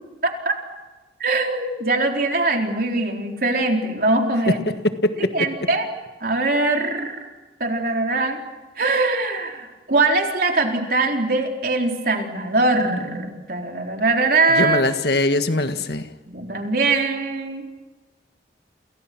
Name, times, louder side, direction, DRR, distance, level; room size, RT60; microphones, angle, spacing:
voice 1, 0.2-0.5 1.2-4.7 5.3-5.9 6.2-7.2 7.6-8.4 8.8-14.8 16.3-17.6, right 3 dB, 55° right, 3 dB, 4.1 m, -22 dB
voice 2, 4.5-5.3 14.6-16.0, left 2 dB, 65° left, 8 dB, 1.7 m, -21 dB
29.5 x 28.5 x 6.2 m, 1.2 s
head